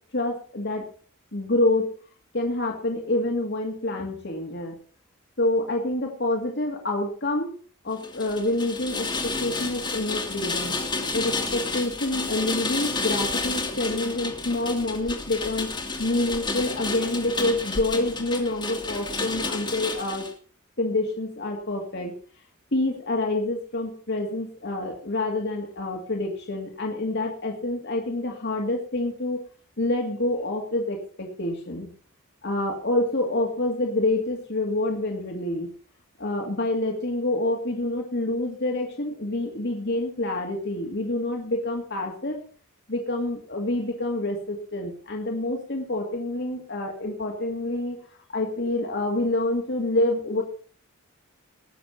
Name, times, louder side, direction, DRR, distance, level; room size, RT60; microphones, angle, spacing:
voice 1, 0.1-0.9 1.3-1.9 2.3-4.8 5.4-7.5 7.8-10.8 11.1-20.3 20.8-22.1 22.7-29.4 29.8-31.9 32.4-35.7 36.2-42.4 42.9-48.0 48.3-50.4, left 2 dB, 55° left, 1 dB, 2.3 m, -27 dB
Rain, 8.0-20.3, left 3 dB, 20° left, 2.1 m, -31 dB
19.5 x 7.0 x 5.7 m, 0.43 s
head